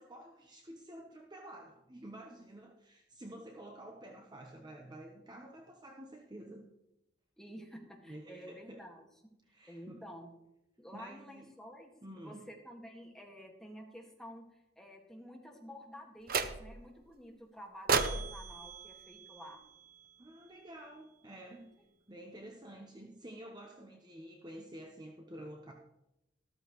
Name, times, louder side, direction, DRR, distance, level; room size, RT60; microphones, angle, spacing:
voice 1, 0.0-6.7 8.0-8.8 9.5-10.0 10.9-11.5 12.0-12.5 20.2-21.7 22.1-25.7, right 1 dB, 25° right, 1 dB, 1.0 m, -50 dB
voice 2, 7.4-9.0 9.7-10.3 10.8-14.5 14.8-19.6, equal, 5° left, 0 dB, 1.9 m, -50 dB
sound 1, 16.3-16.9 17.9-20.1, right 5 dB, 55° right, 0.7 m, -35 dB
13.5 x 13.5 x 3.1 m, 0.87 s
head